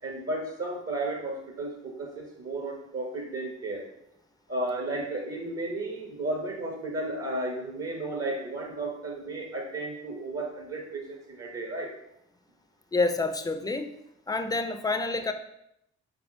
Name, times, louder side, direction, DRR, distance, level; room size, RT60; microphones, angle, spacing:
voice 1, 0.0-3.8 4.5-11.9, right 2 dB, 45° right, 1 dB, 0.8 m, -33 dB
voice 2, 12.9-13.9 14.3-15.3, left 3 dB, 10° left, 8 dB, 0.4 m, -28 dB
4.4 x 3.5 x 2.6 m, 0.79 s
hypercardioid pair, 45°, 33 cm